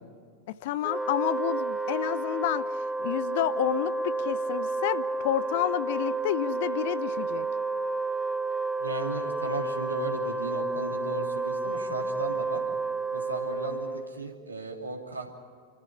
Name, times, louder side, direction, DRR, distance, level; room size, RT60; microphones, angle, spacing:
voice 1, 0.6-7.5, left 13 dB, 50° left, 16 dB, 0.8 m, -30 dB
Wind instrument woodwind instrument, 0.8-14.2, right 3 dB, 5° right, 0.8 m, -31 dB
voice 2, 8.8-12.6 13.1-15.3, right 3 dB, 80° right, 2 dB, 2.7 m, -35 dB
28.5 x 15.0 x 7.1 m, 2.1 s
figure-of-eight pair, 90°, 0 cm